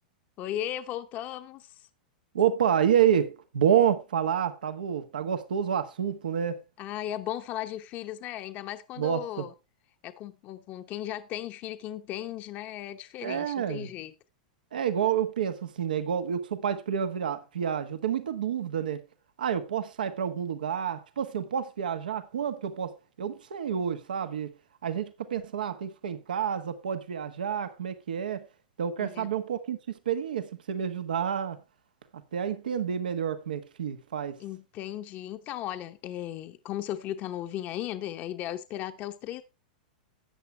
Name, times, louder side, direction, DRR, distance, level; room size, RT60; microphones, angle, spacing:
voice 1, 0.4-1.9 6.8-9.5 10.0-14.1 29.0-29.3 34.4-39.4, left 12 dB, 40° left, 0.9 m, -36 dB
voice 2, 2.3-6.6 9.0-9.5 13.2-13.9 14.7-19.0 19.4-24.5 24.8-28.4 28.8-29.8 30.0-31.6 32.3-34.4, right 8 dB, 90° right, 1.4 m, -29 dB
13.5 x 8.7 x 3.3 m
hypercardioid pair, 125°, 5 cm